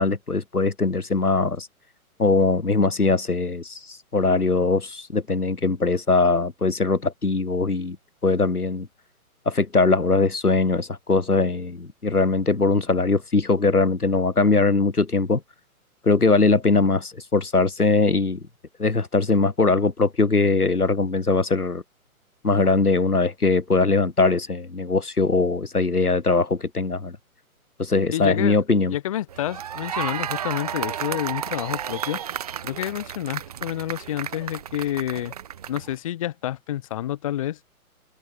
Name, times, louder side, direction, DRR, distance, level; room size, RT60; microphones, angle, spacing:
voice 1, 0.0-1.7 2.2-8.0 8.2-8.9 9.5-15.4 16.0-18.4 18.8-21.8 22.4-27.2 27.8-28.9, left 3 dB, 90° left, 1.2 m, -21 dB
voice 2, 28.1-28.6 28.9-32.2 32.6-35.3 35.7-37.6, left 12 dB, 25° left, 0.9 m, -29 dB
sound 1, 29.3-36.0, right 9 dB, 25° right, 0.7 m, -32 dB
figure-of-eight pair, 130°, 44 cm